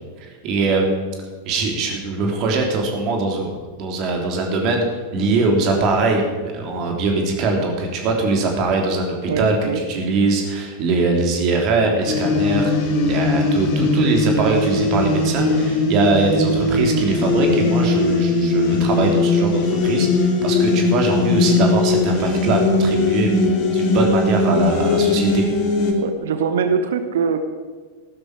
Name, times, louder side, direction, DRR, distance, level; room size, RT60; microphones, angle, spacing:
voice 1, 0.4-1.1 1.5-4.9 5.1-23.4 23.7-25.5, right 3 dB, 40° right, 2 dB, 3.3 m, -22 dB
voice 2, 9.3-9.8 24.6-24.7 26.0-27.4, right 6 dB, 60° right, 9 dB, 1.0 m, -22 dB
sound 1, 12.0-25.9, left 3 dB, 45° left, 2.5 m, -19 dB
15.5 x 12.0 x 5.1 m, 1.5 s
figure-of-eight pair, 90°, 0 cm